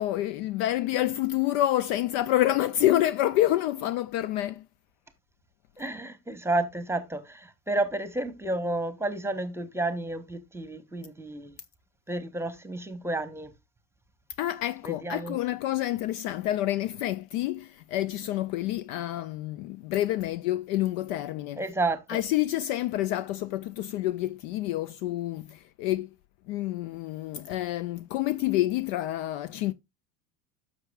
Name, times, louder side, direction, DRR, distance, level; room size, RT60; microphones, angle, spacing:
voice 1, 0.0-4.6 14.4-21.6 22.1-26.1 26.5-29.7, left 14 dB, 50° left, 0.4 m, -28 dB
voice 2, 5.8-11.6 12.1-13.5 14.8-15.4 21.6-22.2, right 2 dB, 5° right, 1.1 m, -31 dB
13.0 x 6.0 x 2.3 m
hypercardioid pair, 80°, 45 cm